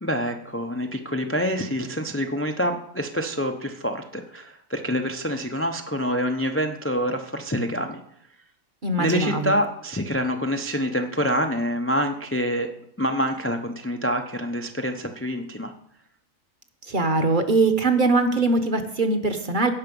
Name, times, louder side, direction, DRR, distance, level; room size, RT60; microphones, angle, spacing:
voice 1, 0.0-8.0 9.0-12.7 13.0-15.7, equal, 20° left, 4 dB, 0.4 m, -26 dB
voice 2, 8.8-9.6 16.9-19.7, right 3 dB, 40° right, 7 dB, 1.0 m, -22 dB
16.5 x 5.8 x 5.3 m, 0.72 s
omnidirectional pair, 1.5 m